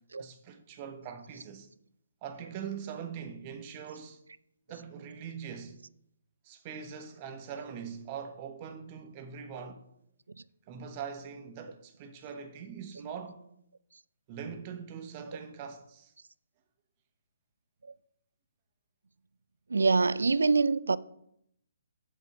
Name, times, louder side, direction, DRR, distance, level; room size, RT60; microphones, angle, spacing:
voice 1, 0.2-1.7 2.2-4.2 4.7-5.8 6.4-9.8 10.7-13.4 14.3-16.1, right 7 dB, 30° right, 1.1 m, -42 dB
voice 2, 19.7-21.0, right 4 dB, 70° right, 0.4 m, -24 dB
8.2 x 4.3 x 6.7 m
figure-of-eight pair, 135°, 0 cm